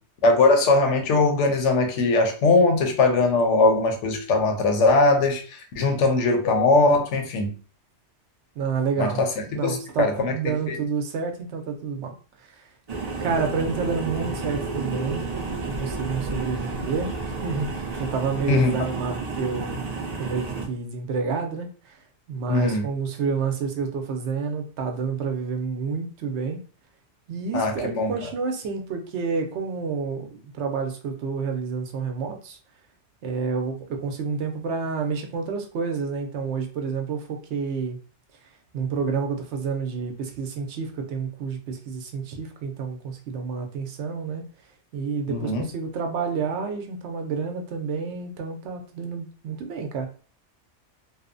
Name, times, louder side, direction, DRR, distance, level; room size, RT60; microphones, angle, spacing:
voice 1, 0.2-7.5 9.0-9.3 9.6-10.3 10.7-10.8 18.5-18.8 22.5-22.8 27.5-28.1 45.3-45.7, left 3 dB, 80° left, 4 dB, 0.9 m, -20 dB
voice 2, 8.6-9.2 9.5-12.7 13.2-15.2 15.6-17.1 17.4-19.8 20.2-22.0 22.3-26.6 27.3-32.6 33.2-38.0 38.7-44.4 44.9-50.1, right 5 dB, 75° right, 4 dB, 0.8 m, -29 dB
sound 1, 12.9-20.7, right 3 dB, 45° right, 0.6 m, -31 dB
2.8 x 2.0 x 2.5 m, 0.37 s
omnidirectional pair, 1.2 m